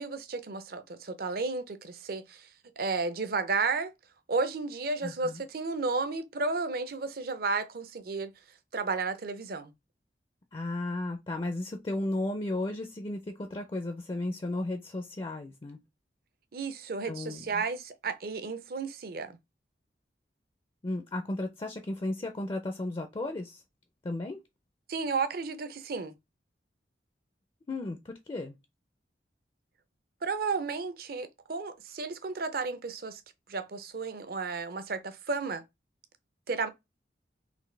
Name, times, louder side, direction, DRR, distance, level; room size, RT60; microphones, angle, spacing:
voice 1, 0.0-2.5 2.8-3.9 4.3-8.3 8.7-9.7 16.5-19.4 24.9-26.1 30.2-33.2 33.5-35.6 36.5-36.7, right 4 dB, 55° right, 0.6 m, -33 dB
voice 2, 5.0-5.4 10.5-15.8 17.0-17.5 20.8-23.6 24.0-24.4 27.7-28.6, left 2 dB, 30° left, 0.4 m, -34 dB
4.0 x 2.9 x 3.2 m
head